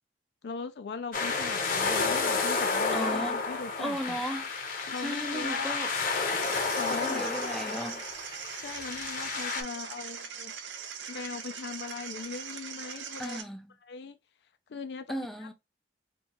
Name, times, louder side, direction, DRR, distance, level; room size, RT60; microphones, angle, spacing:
voice 1, 0.4-4.2 4.9-5.8 6.7-7.3 8.6-10.5 11.1-13.4 13.8-14.2 14.7-15.5, left 5 dB, 65° left, 0.4 m, -39 dB
sound 1, 1.1-9.6, left 4 dB, 45° left, 0.8 m, -31 dB
voice 2, 2.9-3.4 3.8-4.5 5.0-5.9 6.9-8.0 13.2-13.7 15.1-15.5, equal, ahead, 0.4 m, -35 dB
sound 2, 6.4-13.4, right 7 dB, 85° right, 0.7 m, -41 dB
4.4 x 2.3 x 2.9 m
head